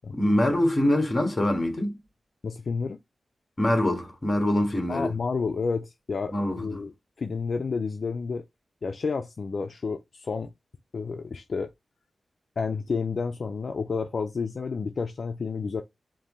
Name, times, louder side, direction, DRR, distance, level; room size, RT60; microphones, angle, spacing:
voice 1, 0.1-2.0 3.6-5.2 6.3-6.8, left 1 dB, 25° left, 1.8 m, -24 dB
voice 2, 2.4-3.0 4.9-6.9 7.2-8.4 8.8-10.5 10.9-11.7 12.6-15.8, left 4 dB, 55° left, 0.5 m, -30 dB
4.7 x 3.1 x 3.1 m
wide cardioid pair, 145°, 0 cm